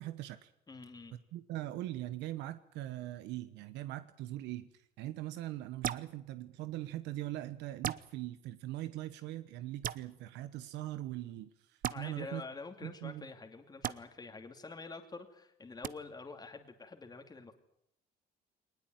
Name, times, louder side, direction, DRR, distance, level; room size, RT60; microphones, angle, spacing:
voice 1, 0.0-0.5 1.3-12.4 12.8-13.2, right 15 dB, 85° right, 1.1 m, -41 dB
voice 2, 0.7-1.2 11.9-17.5, left 4 dB, 20° left, 2.7 m, -47 dB
sound 1, 5.8-6.1 7.8-8.0 9.8-10.0 11.8-12.0 13.8-14.0 15.8-15.9, right 10 dB, 50° right, 0.9 m, -35 dB
21.0 x 20.0 x 9.3 m
cardioid pair, 100°, 18 cm